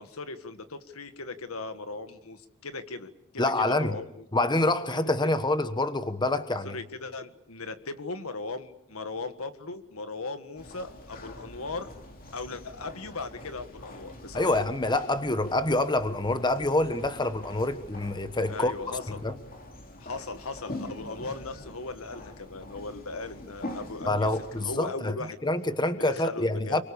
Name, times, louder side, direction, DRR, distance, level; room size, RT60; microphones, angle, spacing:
voice 1, 0.0-4.3 5.0-5.3 6.6-11.9 12.3-14.5 16.3-16.4 18.5-19.2 20.0-25.4 25.9-26.8, left 3 dB, 80° left, 9 dB, 1.7 m, -38 dB
voice 2, 3.4-4.0 4.3-6.8 14.3-18.7 19.2-19.3 24.1-25.1 25.4-26.8, left 2 dB, 20° left, 10 dB, 1.2 m, -26 dB
sound 1, 10.6-24.8, left 1 dB, 45° left, 2.6 m, -44 dB
28.5 x 24.0 x 7.1 m, 0.76 s
head